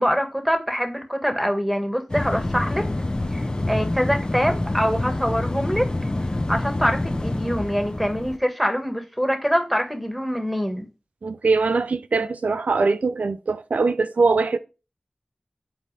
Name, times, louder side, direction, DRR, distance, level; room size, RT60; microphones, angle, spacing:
voice 1, 0.0-2.8 3.3-5.9 6.5-10.9, equal, ahead, 1.6 m, -24 dB
sound 1, 2.1-8.4, left 2 dB, 35° left, 0.8 m, -27 dB
voice 2, 11.2-14.6, right 4 dB, 85° right, 0.3 m, -22 dB
7.4 x 4.1 x 3.3 m
wide cardioid pair, 45°, 2 cm